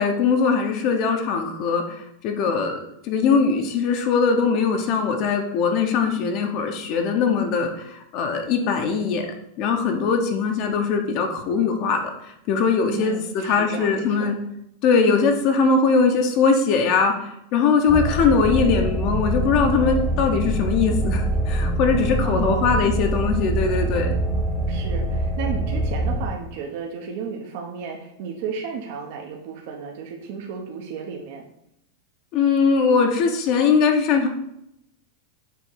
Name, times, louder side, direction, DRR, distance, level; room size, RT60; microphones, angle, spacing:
voice 1, 0.0-2.8 3.0-9.2 9.6-14.4 14.8-24.1 32.3-34.3, left 5 dB, 40° left, 3 dB, 0.8 m, -21 dB
voice 2, 12.9-14.3 22.2-22.8 24.7-31.4, right 6 dB, 55° right, 1 dB, 0.9 m, -33 dB
sound 1, 17.9-26.3, right 1 dB, 10° right, 1.0 m, -24 dB
7.0 x 3.1 x 4.6 m, 0.77 s
supercardioid pair, 155°, 0 cm